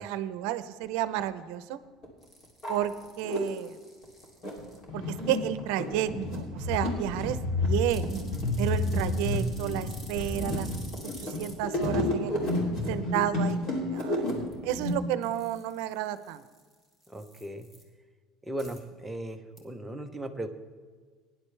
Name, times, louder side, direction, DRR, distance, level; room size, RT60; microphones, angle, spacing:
voice 1, 0.0-1.8 2.7-3.8 4.9-8.1 8.6-10.7 11.2-12.4 12.9-14.3 14.6-16.4, right 12 dB, 70° right, 13 dB, 0.7 m, -31 dB
sound 1, 1.2-1.3 2.0-2.1 2.4-3.4 4.0-14.9, left 1 dB, 35° left, 2.9 m, -30 dB
sound 2, 2.2-4.8 7.9-11.5 14.4-14.9 15.2-17.8 18.6-18.8 19.6-19.7, equal, 15° left, 2.0 m, -51 dB
voice 2, 17.1-17.7 18.4-20.5, right 1 dB, 5° right, 4 dB, 0.8 m, -37 dB
18.0 x 10.5 x 3.3 m, 1.5 s
cardioid pair, 170°, 0 cm